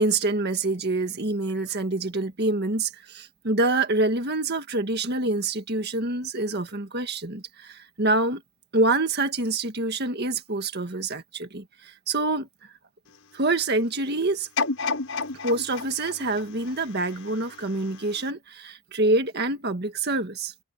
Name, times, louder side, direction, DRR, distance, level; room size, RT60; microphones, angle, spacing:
voice 1, 0.0-8.4 8.7-12.5 13.3-14.5 15.4-20.5, right 2 dB, 50° right, 1.8 m, -26 dB
sound 1, 14.6-17.6 18.2-18.3, left 4 dB, 75° left, 6.1 m, -31 dB
head